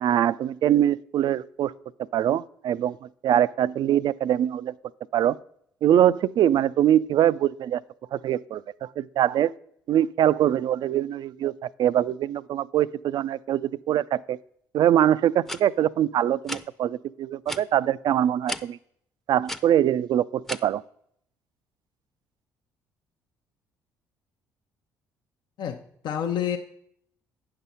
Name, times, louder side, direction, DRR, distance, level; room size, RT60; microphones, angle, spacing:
voice 1, 0.0-1.7 2.1-4.7 5.1-5.4 5.8-7.8 8.1-9.5 9.9-14.4 14.7-18.8 19.3-20.8, right 11 dB, 55° right, 19 dB, 0.3 m, -23 dB
sound 1, 15.5-15.6 16.4-16.7 17.5-17.6 18.5-18.6 19.5-19.6 20.5-20.6, left 1 dB, 5° left, 0.6 m, -32 dB
voice 2, 25.6-26.6, left 9 dB, 60° left, 5 dB, 0.7 m, -29 dB
9.3 x 5.8 x 5.5 m, 0.69 s
hypercardioid pair, 55°, 9 cm